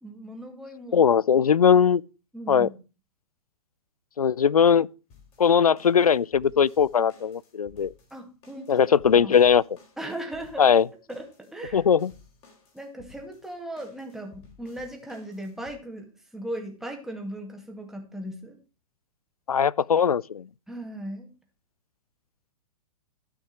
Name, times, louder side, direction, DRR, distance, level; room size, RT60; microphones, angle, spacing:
voice 1, 0.0-1.0 2.3-2.7 8.1-8.9 9.2-9.4 10.0-10.7 11.1-11.8 12.7-18.6 20.7-21.3, right 1 dB, ahead, 2.2 m, -37 dB
voice 2, 0.9-2.0 2.5-2.7 4.2-4.9 5.4-7.9 8.7-9.6 10.6-10.9 11.7-12.1 19.5-20.5, left 7 dB, 80° left, 0.4 m, -20 dB
sound 1, 5.1-15.8, left 5 dB, 30° left, 4.4 m, -55 dB
13.0 x 5.9 x 5.9 m
figure-of-eight pair, 110°, 19 cm